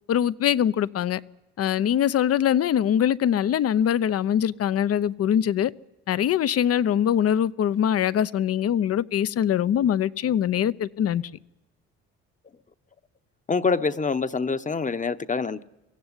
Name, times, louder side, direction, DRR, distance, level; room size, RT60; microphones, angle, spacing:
voice 1, 0.1-1.2 1.6-5.7 6.1-11.2, left 9 dB, 55° left, 0.8 m, -23 dB
voice 2, 13.5-15.6, left 4 dB, 25° left, 1.0 m, -25 dB
24.0 x 16.0 x 9.7 m
supercardioid pair, 75°, 29 cm